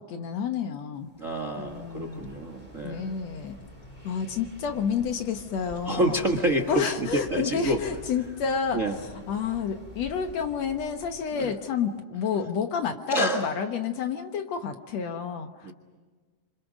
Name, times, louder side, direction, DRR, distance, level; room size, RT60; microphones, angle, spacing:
voice 1, 0.0-1.1 1.6-2.3 2.8-3.6 4.0-6.2 6.7-15.7, left 6 dB, 65° left, 7 dB, 2.1 m, -30 dB
sound 1, 1.0-11.9, left 2 dB, 15° left, 3.3 m, -47 dB
voice 2, 1.2-3.1 5.9-7.8 8.7-9.0 11.4-11.5 13.1-13.4 15.6-15.7, right 1 dB, 35° right, 5 dB, 1.3 m, -27 dB
27.0 x 26.0 x 6.3 m, 1.4 s
omnidirectional pair, 3.6 m